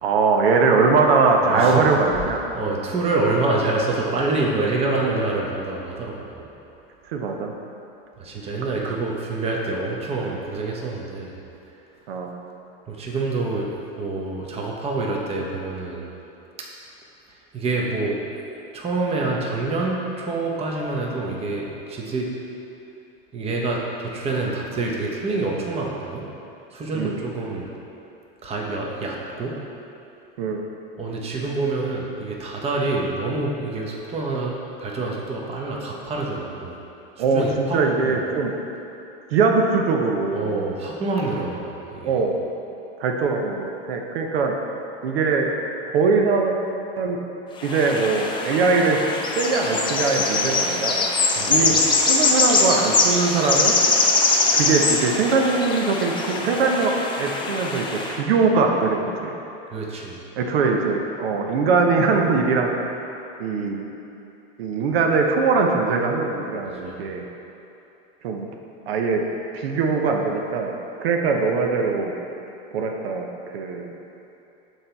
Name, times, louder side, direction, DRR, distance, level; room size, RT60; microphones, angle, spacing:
voice 1, 0.0-2.4 7.1-7.5 8.8-9.0 12.1-12.3 26.9-27.2 30.4-30.6 37.2-38.5 39.3-40.6 42.0-42.4 43.0-44.6 45.0-45.5 45.9-46.5 47.0-47.2 47.6-49.0 49.4-51.0 51.5-51.7 52.1-53.7 54.5-59.3 60.4-62.9 63.4-63.9 64.6-67.2 68.2-68.5 68.9-69.2 69.5-70.7 71.0-72.1 72.7-73.3 73.5-73.9, right 4 dB, 80° right, 2 dB, 0.7 m, -21 dB
voice 2, 1.4-2.0 2.5-6.5 8.2-11.4 12.9-16.1 16.6-16.7 17.5-18.2 18.7-22.3 23.3-26.2 26.7-27.7 28.4-29.6 31.0-36.8 37.3-38.2 40.3-42.2 51.4-51.9 59.7-60.2 66.6-67.0, right 3 dB, 20° right, -2 dB, 0.8 m, -27 dB
sound 1, 47.6-58.1, left 3 dB, 15° left, 0.5 m, -22 dB
6.5 x 4.4 x 3.9 m, 2.9 s
supercardioid pair, 130°, 30 cm